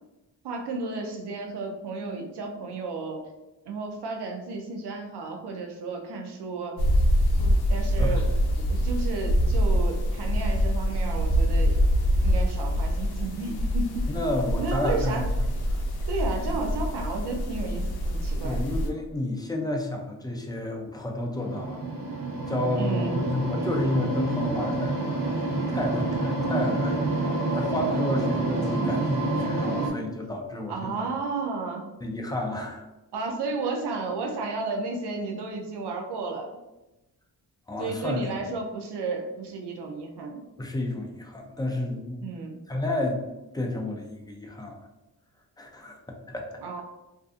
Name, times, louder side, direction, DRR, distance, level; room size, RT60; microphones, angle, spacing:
voice 1, 0.4-3.3 3.7-6.8 7.7-8.3 8.6-11.8 12.2-14.1 14.6-15.3 16.1-18.6 22.8-23.2 30.7-31.9 33.1-36.5 37.8-40.4 42.2-42.6 46.6-46.8, right 3 dB, 90° right, 2 dB, 0.5 m, -33 dB
sound 1, 6.8-18.9, equal, 70° left, 0.5 m, -25 dB
voice 2, 14.1-15.2 18.4-21.8 22.5-31.1 32.0-32.8 37.7-38.2 40.6-42.3 42.7-43.2 43.5-44.9 45.6-46.6, left 1 dB, 10° left, 1 dB, 0.3 m, -31 dB
sound 2, 21.3-29.9, right 2 dB, 60° right, 0.8 m, -28 dB
2.5 x 2.4 x 2.4 m, 1.0 s
wide cardioid pair, 95°, 39 cm